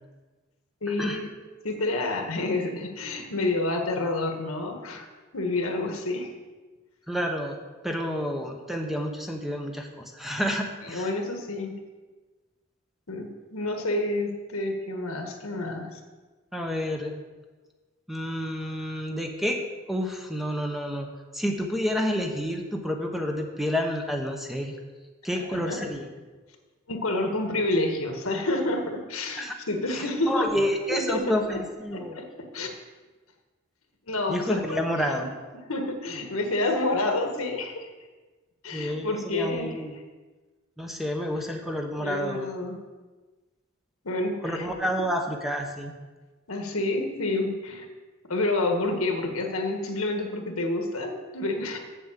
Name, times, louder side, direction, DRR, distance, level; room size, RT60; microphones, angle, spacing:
voice 1, 0.8-1.3 1.6-5.1 5.3-6.3 10.8-11.8 13.1-16.0 25.3-25.8 26.9-30.5 30.9-31.6 31.9-32.7 34.1-35.3 35.7-37.9 38.6-39.8 42.0-42.8 44.0-44.7 46.5-47.9 48.3-51.8, left 2 dB, 90° left, 4 dB, 1.5 m, -29 dB
voice 2, 7.1-7.6 7.8-11.1 16.5-17.2 18.1-19.6 19.9-21.1 21.3-24.7 25.2-26.1 29.4-29.6 30.3-32.2 34.3-35.3 38.7-40.0 40.8-42.5 44.4-45.9, equal, ahead, 2 dB, 0.9 m, -29 dB
7.8 x 7.3 x 7.3 m, 1.3 s
head